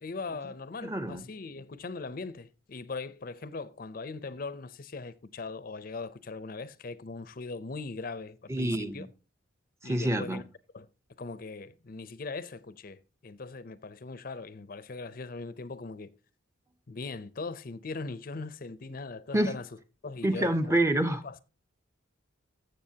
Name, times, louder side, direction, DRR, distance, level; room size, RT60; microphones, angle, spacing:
voice 1, 0.0-9.1 9.8-10.4 10.7-10.9 11.2-16.1 16.9-19.7 20.0-20.8 21.2-21.4, left 3 dB, 45° left, 0.5 m, -40 dB
voice 2, 0.8-1.2 8.5-9.0 9.8-10.4 19.3-19.5 20.2-21.2, right 1 dB, 15° right, 0.6 m, -27 dB
14.5 x 7.1 x 2.8 m
head